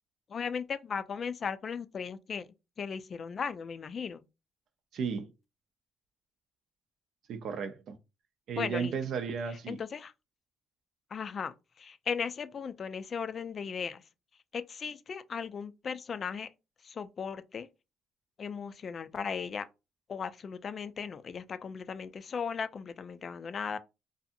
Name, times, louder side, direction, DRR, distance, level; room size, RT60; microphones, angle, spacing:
voice 1, 0.3-2.5 2.8-4.2 8.6-8.9 9.7-10.1 11.1-14.0 14.5-16.5 16.8-17.7 18.4-19.7 20.1-23.8, left 6 dB, 45° left, 0.3 m, -37 dB
voice 2, 4.9-5.3 7.3-8.0 8.5-9.8, right 6 dB, 65° right, 0.5 m, -34 dB
2.6 x 2.4 x 2.6 m
cardioid pair, 85°, 0 cm